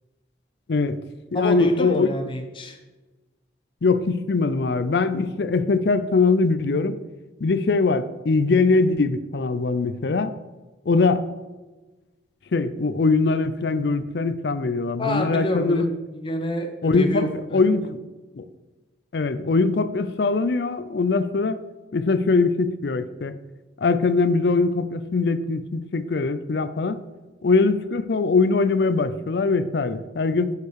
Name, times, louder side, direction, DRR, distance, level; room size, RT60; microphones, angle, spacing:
voice 1, 0.7-1.0 1.3-2.1 3.8-7.0 7.4-10.4 10.9-11.3 12.5-15.9 16.8-18.0 18.3-18.4 19.1-21.6 21.9-23.3 23.8-27.0 27.4-30.5, left 3 dB, 65° left, 13 dB, 0.5 m, -22 dB
voice 2, 1.3-2.8 15.0-15.8 16.2-17.6, left 1 dB, 25° left, 4 dB, 0.9 m, -27 dB
7.0 x 6.8 x 4.7 m, 1.2 s
head